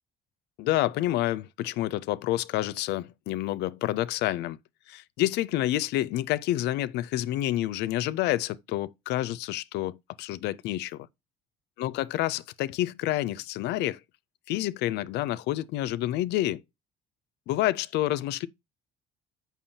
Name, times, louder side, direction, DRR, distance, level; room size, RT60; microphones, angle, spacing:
voice 1, 0.6-4.6 4.9-11.1 11.8-14.0 14.5-16.6 17.5-18.5, left 15 dB, 80° left, 0.4 m, -28 dB
7.1 x 5.8 x 2.7 m
cardioid pair, 110°, 17 cm